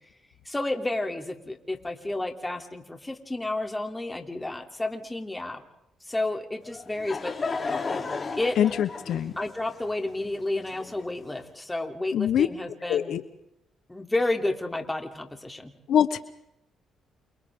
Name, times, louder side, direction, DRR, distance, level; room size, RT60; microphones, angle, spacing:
voice 1, 0.4-5.6 6.1-7.3 8.4-8.6 9.4-13.2 13.9-15.7, left 2 dB, 10° left, 4 dB, 3.0 m, -31 dB
Laughter / Crowd, 6.7-11.3, left 4 dB, 35° left, 3.2 m, -34 dB
voice 2, 8.6-9.3 12.1-12.5 12.9-13.2 15.9-16.2, left 9 dB, 70° left, 12 dB, 1.0 m, -23 dB
29.0 x 28.5 x 3.7 m, 0.81 s
cardioid pair, 90°, 0 cm